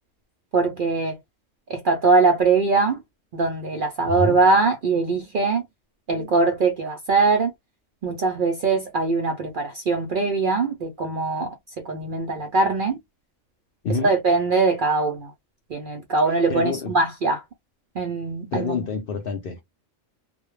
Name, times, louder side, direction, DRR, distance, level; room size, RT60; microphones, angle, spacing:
voice 1, 0.5-1.2 1.7-3.0 3.3-5.6 6.1-7.5 8.0-11.5 11.8-13.0 13.9-15.3 15.7-17.4 18.0-18.9, right 3 dB, 60° right, 0.5 m, -22 dB
voice 2, 4.1-4.4 13.8-14.1 16.5-17.0 18.5-19.6, left 4 dB, 65° left, 0.6 m, -27 dB
2.2 x 2.0 x 3.0 m
omnidirectional pair, 1.3 m